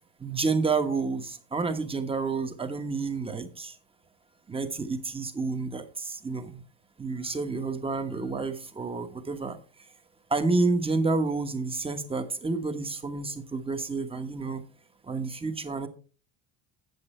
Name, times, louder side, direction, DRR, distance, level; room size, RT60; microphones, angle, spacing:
voice 1, 0.2-3.7 4.5-6.6 7.0-9.6 10.3-14.6 15.1-15.9, right 3 dB, 15° right, 8 dB, 1.2 m, -29 dB
8.5 x 7.5 x 4.3 m, 0.37 s
cardioid pair, 120°, 35 cm